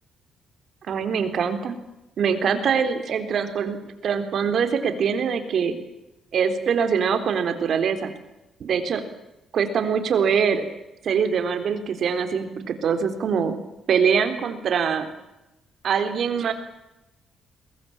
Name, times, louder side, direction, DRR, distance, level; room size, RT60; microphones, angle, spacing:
voice 1, 0.9-1.7 2.2-5.7 6.3-8.1 8.6-9.0 9.5-10.6 11.0-13.6 13.9-15.1 15.8-16.5, right 6 dB, 60° right, 8 dB, 3.9 m, -23 dB
22.0 x 21.0 x 9.0 m, 0.94 s
cardioid pair, 90°, 0 cm